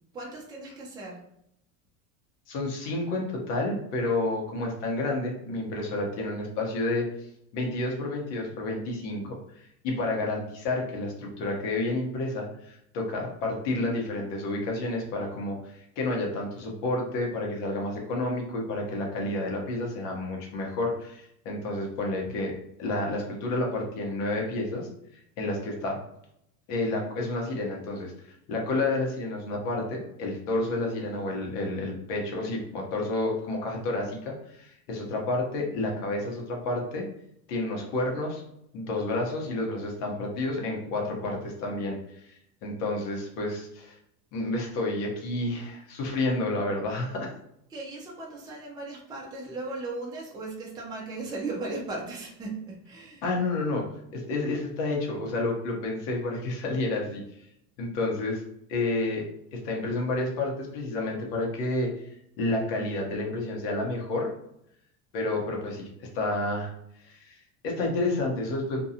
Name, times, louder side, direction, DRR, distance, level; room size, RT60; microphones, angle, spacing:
voice 1, 0.1-1.3 47.7-53.2, right 3 dB, 10° right, -3 dB, 0.5 m, -37 dB
voice 2, 2.5-7.0 7.5-24.9 25.4-26.0 26.7-37.0 37.5-38.4 38.7-44.0 44.3-47.3 53.2-53.8 54.1-57.2 57.8-58.4 58.7-59.3 59.5-61.9 62.4-64.3 65.1-66.7 67.0-68.8, left 2 dB, 65° left, 0 dB, 1.1 m, -30 dB
2.6 x 2.2 x 2.7 m, 0.76 s
supercardioid pair, 115°, 43 cm